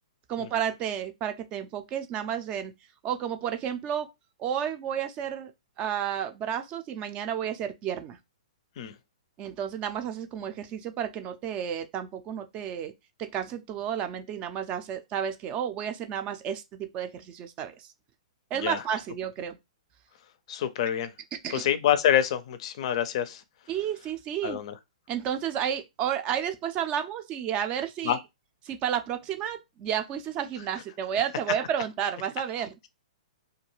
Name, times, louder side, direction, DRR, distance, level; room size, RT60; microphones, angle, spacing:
voice 1, 0.3-2.7 3.0-4.1 4.4-5.5 5.8-8.2 9.4-12.9 13.2-17.9 18.5-19.6 21.4-21.7 23.7-24.6 25.1-28.2 28.6-32.9, right 9 dB, 30° right, 0.4 m, -31 dB
voice 2, 20.5-21.1 21.5-23.4 24.4-24.7 28.0-28.2, left 10 dB, 55° left, 0.4 m, -26 dB
2.3 x 2.2 x 3.0 m
hypercardioid pair, 125°, 4 cm